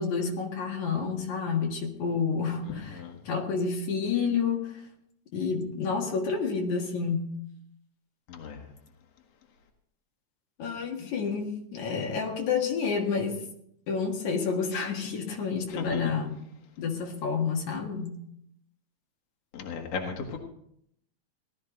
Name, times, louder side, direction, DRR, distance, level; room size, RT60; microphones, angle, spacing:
voice 1, 0.0-4.8 5.3-7.4 10.6-13.4 13.9-16.4 16.8-18.2, left 5 dB, 75° left, 0 dB, 3.2 m, -29 dB
voice 2, 19.5-20.4, left 5 dB, 55° left, 2 dB, 2.7 m, -34 dB
18.5 x 13.0 x 3.9 m, 0.72 s
omnidirectional pair, 3.4 m